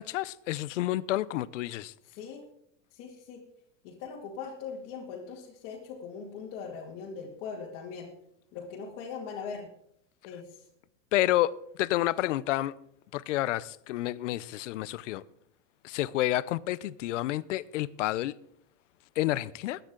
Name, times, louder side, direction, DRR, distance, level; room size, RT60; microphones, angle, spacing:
voice 1, 0.0-1.9 11.1-11.5 11.8-12.7 13.1-15.2 15.8-18.3 19.2-19.8, left 15 dB, 70° left, 0.7 m, -29 dB
voice 2, 2.0-2.4 2.9-3.4 3.8-8.1 8.5-9.7 10.2-10.7, left 5 dB, 40° left, 2.2 m, -40 dB
20.5 x 9.3 x 3.8 m
supercardioid pair, 175°, 38 cm